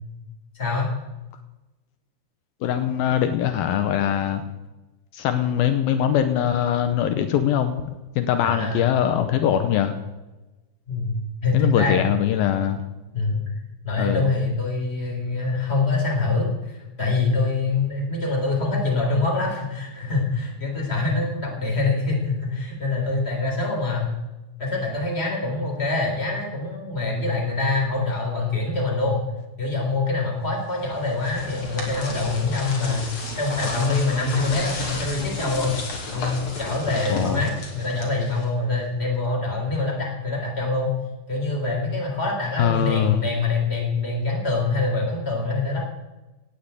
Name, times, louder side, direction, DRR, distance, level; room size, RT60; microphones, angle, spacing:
voice 1, 0.5-0.9 8.4-8.9 10.9-12.0 13.1-13.5 13.8-24.1 24.6-29.2 29.6-33.1 33.4-35.7 36.1-40.9 41.3-45.8, left 3 dB, 15° left, 0 dB, 3.8 m, -25 dB
voice 2, 2.6-4.4 5.1-7.8 8.2-9.9 11.5-12.8 14.0-14.2 37.1-37.4 42.6-43.2, left 10 dB, 80° left, 8 dB, 2.7 m, -22 dB
sound 1, 30.8-38.6, left 3 dB, 45° left, 3.8 m, -33 dB
18.0 x 7.6 x 8.3 m, 1.1 s
omnidirectional pair, 4.3 m